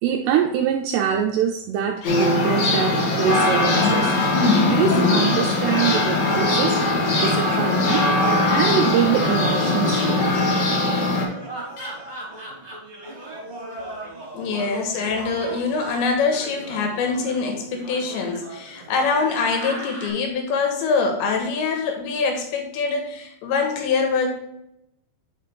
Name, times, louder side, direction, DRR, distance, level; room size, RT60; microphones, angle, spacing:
voice 1, 0.0-6.8 7.2-10.3, right 8 dB, 80° right, 3 dB, 2.5 m, -24 dB
sound 1, 2.0-2.3 4.5-4.6 7.1-7.6 9.9-10.0 11.8-11.9, left 4 dB, 65° left, 1.8 m, -37 dB
sound 2, 2.0-11.2, left 2 dB, 50° left, 2.5 m, -20 dB
sound 3, 2.8-20.1, right 2 dB, 20° right, 2.2 m, -37 dB
voice 2, 14.3-24.3, left 4 dB, 85° left, 4 dB, 3.5 m, -24 dB
10.0 x 5.6 x 3.3 m, 0.83 s
omnidirectional pair, 5.1 m